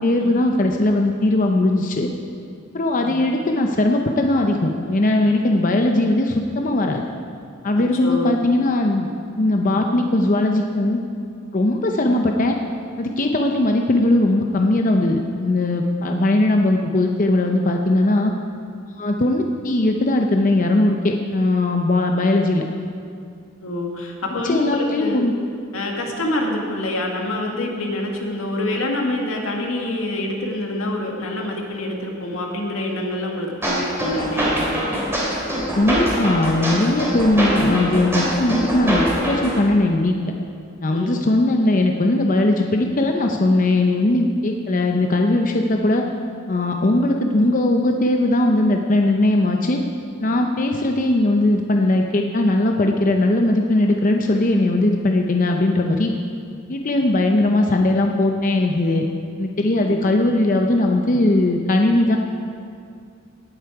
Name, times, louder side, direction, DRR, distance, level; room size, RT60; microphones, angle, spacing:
voice 1, 0.0-2.1 2.7-7.0 7.6-9.1 9.4-11.0 11.5-12.6 13.0-18.3 19.0-22.6 24.4-25.3 35.8-40.3 40.8-46.0 46.5-49.8 50.2-56.1 56.7-59.0 59.4-62.2, left 2 dB, 40° left, 3 dB, 0.6 m, -19 dB
voice 2, 7.8-8.4 12.0-12.3 22.2-22.4 23.6-25.2 25.7-34.6 40.9-41.2 59.8-60.1, left 1 dB, 85° left, 0 dB, 1.8 m, -26 dB
sound 1, 33.6-39.6, equal, 10° right, 3.0 m, -23 dB
18.0 x 8.1 x 4.8 m, 2.3 s
head